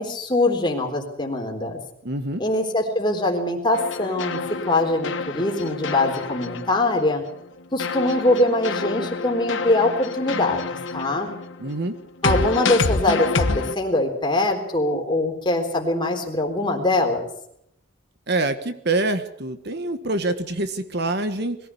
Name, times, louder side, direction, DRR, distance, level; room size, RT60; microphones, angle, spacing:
voice 1, 0.0-1.8 2.4-4.4 4.7-7.2 7.7-10.6 10.9-11.3 12.2-17.3, left 2 dB, 25° left, 2 dB, 3.8 m, -22 dB
voice 2, 2.0-2.4 11.6-12.0 18.3-21.6, right 2 dB, 55° right, 10 dB, 1.4 m, -25 dB
sound 1, 3.7-7.4 7.8-13.7, left 4 dB, 65° left, 1.4 m, -28 dB
22.0 x 15.5 x 8.5 m, 0.75 s
head